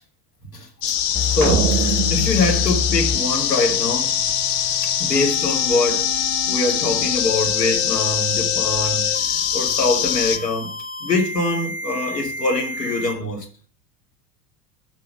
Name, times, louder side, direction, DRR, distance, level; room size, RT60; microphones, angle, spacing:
sound 1, 0.8-10.4, left 9 dB, 35° left, 0.7 m, -23 dB
sound 2, 1.1-13.1, left 5 dB, 15° left, 1.1 m, -30 dB
voice 1, 1.3-4.1 5.0-9.1 9.5-10.7 11.0-13.5, left 2 dB, 80° left, 1.9 m, -23 dB
sound 3, 1.4-3.9, right 11 dB, 55° right, 0.6 m, -26 dB
6.0 x 5.5 x 5.1 m
figure-of-eight pair, 80°, 48 cm